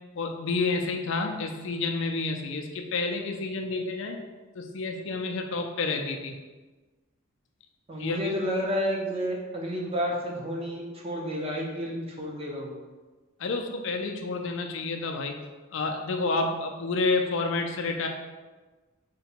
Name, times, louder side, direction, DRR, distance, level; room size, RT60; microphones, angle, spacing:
voice 1, 0.2-4.2 4.6-6.3 8.0-8.2 13.4-15.3 15.7-18.1, left 3 dB, 60° left, 4 dB, 0.4 m, -29 dB
voice 2, 7.9-12.8, equal, 25° right, -1 dB, 0.5 m, -31 dB
3.8 x 2.2 x 4.3 m, 1.3 s
head